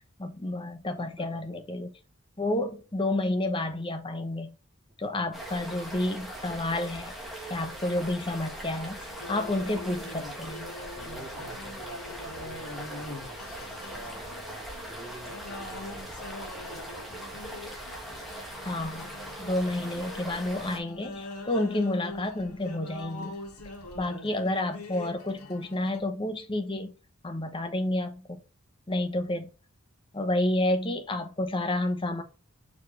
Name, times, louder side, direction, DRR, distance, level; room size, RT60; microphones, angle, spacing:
voice 1, 0.2-1.9 2.4-4.5 5.0-7.1 7.5-9.0 9.3-10.7 18.6-19.1 19.4-23.4 24.0-26.9 27.2-28.4 28.9-29.5 30.1-32.2, left 1 dB, 20° left, 0.9 m, -30 dB
voice 2, 1.0-1.6 5.1-5.4 10.9-17.3 29.1-29.2, right 1 dB, 20° right, 2.9 m, -48 dB
sound 1, 5.3-20.8, right 1 dB, ahead, 1.4 m, -41 dB
sound 2, 8.9-26.0, left 2 dB, 85° left, 2.0 m, -43 dB
6.8 x 4.5 x 3.3 m
head